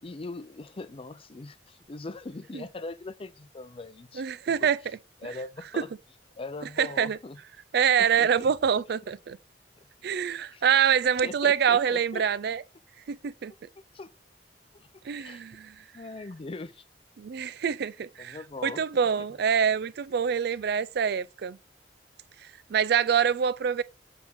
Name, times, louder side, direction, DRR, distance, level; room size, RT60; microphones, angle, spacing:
voice 1, 0.0-4.7 5.2-5.9 6.4-7.4 8.0-8.5 9.8-9.9 10.5-10.6 11.2-12.2 13.9-14.1 14.7-14.9 15.2-15.4 15.9-16.8 18.2-18.8 19.2-19.3, left 3 dB, 30° left, 0.5 m, -41 dB
voice 2, 4.2-4.8 5.8-5.9 6.8-7.2 7.7-9.4 10.0-12.6 13.1-13.5 15.0-15.8 17.2-18.4 18.6-21.6 22.7-23.8, right 7 dB, 65° right, 0.4 m, -25 dB
7.2 x 3.6 x 4.6 m
head